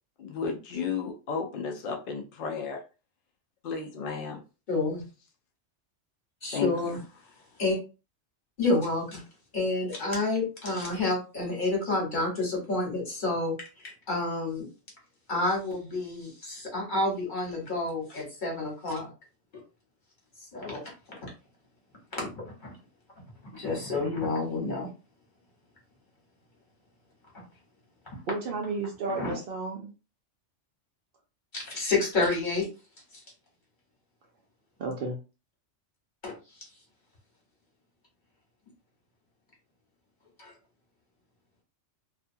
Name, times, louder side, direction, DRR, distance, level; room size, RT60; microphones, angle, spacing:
voice 1, 0.2-2.8 3.6-4.4 6.5-7.0, left 6 dB, 60° left, 0.6 m, -33 dB
voice 2, 4.7-5.0 6.4-7.0 7.6-7.8 8.6-9.2 9.5-14.7 15.3-19.1 19.5-19.6 20.5-20.9 21.2-21.3 22.1-22.8 23.5-24.9 27.3-27.4 28.1-28.2 29.0-29.4 31.5-32.7 33.1-33.2 36.2-36.3 40.4-40.5, left 2 dB, 45° left, 1.3 m, -29 dB
voice 3, 28.3-29.9 34.8-35.2, right 3 dB, 60° right, 0.6 m, -32 dB
2.5 x 2.3 x 2.6 m
omnidirectional pair, 1.2 m